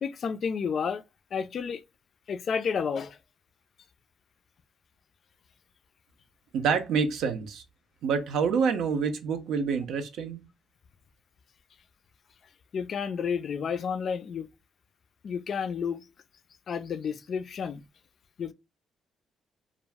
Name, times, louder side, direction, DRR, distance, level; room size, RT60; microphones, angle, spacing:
voice 1, 0.0-1.0 1.3-1.8 2.3-3.2 12.7-14.5 15.2-16.0 16.7-17.8 18.4-18.5, left 6 dB, 55° left, 0.3 m, -31 dB
voice 2, 6.5-7.6 8.0-10.4, right 6 dB, 80° right, 0.5 m, -27 dB
2.3 x 2.0 x 3.2 m
cardioid pair, 90°, 0 cm